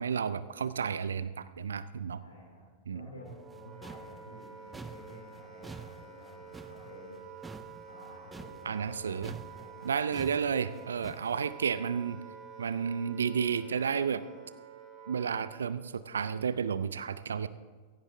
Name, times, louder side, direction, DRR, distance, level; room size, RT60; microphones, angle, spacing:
voice 1, 0.0-2.2 2.9-3.1 8.7-9.4 9.8-12.2 12.6-14.2 15.1-17.5, right 6 dB, 70° right, 15 dB, 0.5 m, -32 dB
voice 2, 2.2-7.2 7.9-9.9, left 1 dB, 75° left, -2 dB, 2.9 m, -51 dB
Wind instrument woodwind instrument, 3.2-15.8, right 7 dB, 25° right, 2.1 m, -49 dB
sound 1, 3.3-9.0 9.2-11.4, right 4 dB, 10° right, 0.7 m, -48 dB
16.5 x 16.0 x 3.6 m, 1.5 s
figure-of-eight pair, 90°, 0 cm